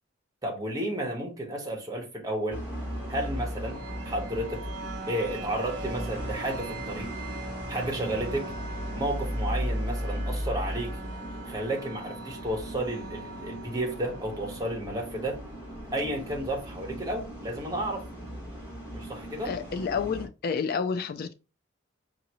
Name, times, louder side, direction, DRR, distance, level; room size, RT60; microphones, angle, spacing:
voice 1, 0.4-2.6 3.1-3.8 4.0-4.7 5.1-7.1 7.7-8.5 8.9-11.0 11.5-15.4 15.9-18.1 18.9-19.5, right 1 dB, 20° right, 1.1 m, -32 dB
sound 1, 2.5-20.3, equal, 10° left, 2.0 m, -36 dB
sound 2, 2.7-16.6, right 3 dB, 60° right, 0.8 m, -43 dB
voice 2, 19.4-21.3, left 5 dB, 45° left, 0.3 m, -30 dB
5.5 x 2.6 x 2.9 m
head